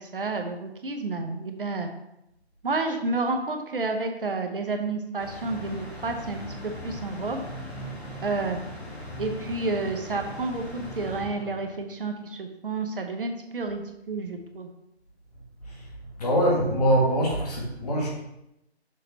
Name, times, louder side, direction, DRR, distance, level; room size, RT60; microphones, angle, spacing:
voice 1, 0.0-1.9 2.6-7.4 8.2-8.6 9.2-14.7, right 3 dB, 55° right, 4 dB, 0.8 m, -30 dB
sound 1, 5.2-11.9, equal, 70° left, 2.0 m, -39 dB
voice 2, 16.2-18.1, equal, 35° left, -2 dB, 1.6 m, -23 dB
6.6 x 3.9 x 4.0 m, 0.85 s
figure-of-eight pair, 160°, 33 cm